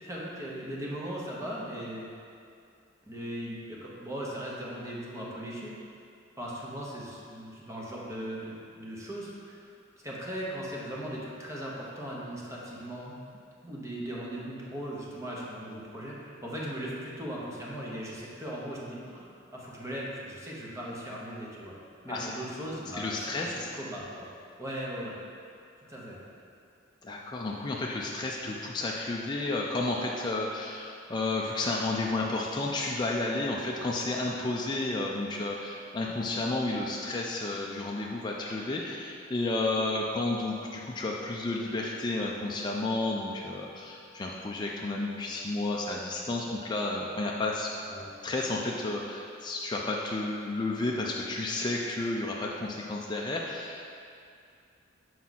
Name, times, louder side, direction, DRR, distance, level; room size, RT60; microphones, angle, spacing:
voice 1, 0.0-2.1 3.1-5.8 6.4-9.7 10.0-13.2 13.6-19.3 19.5-21.8 22.0-24.3 24.6-25.2 25.8-26.2 47.9-48.1, equal, 15° right, -5 dB, 0.9 m, -38 dB
voice 2, 22.9-23.7 27.0-47.7 48.2-53.9, left 2 dB, 25° left, -2 dB, 0.4 m, -32 dB
5.9 x 4.7 x 4.1 m, 2.4 s
head